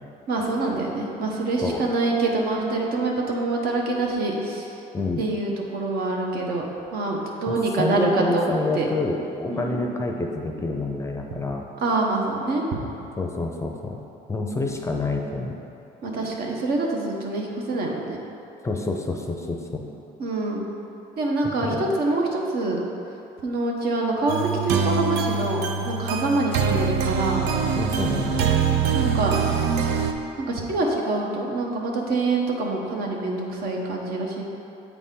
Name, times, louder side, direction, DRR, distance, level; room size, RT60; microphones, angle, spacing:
voice 1, 0.3-4.7 5.2-6.7 6.9-8.4 8.7-8.9 9.5-9.8 11.8-12.6 16.0-18.2 20.2-20.7 21.2-22.8 23.4-27.4 28.9-29.4 30.4-34.4, right 2 dB, 65° right, -1 dB, 1.0 m, -25 dB
voice 2, 7.5-11.6 13.2-14.0 14.3-15.6 18.6-19.8 21.4-21.8 27.8-28.5, left 2 dB, 15° left, 2 dB, 0.5 m, -27 dB
sound 1, 24.3-30.1, right 6 dB, 85° right, 0.5 m, -24 dB
8.2 x 4.1 x 3.7 m, 2.8 s
cardioid pair, 110°, 17 cm